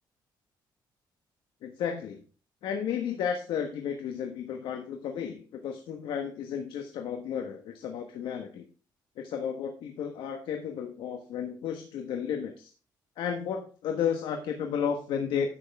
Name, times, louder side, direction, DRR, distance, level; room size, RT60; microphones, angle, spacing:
voice 1, 1.6-2.2 2.6-8.6 9.2-12.7 13.2-15.6, left 7 dB, 85° left, 5 dB, 1.3 m, -33 dB
11.0 x 8.0 x 3.5 m, 0.36 s
cardioid pair, 125°, 8 cm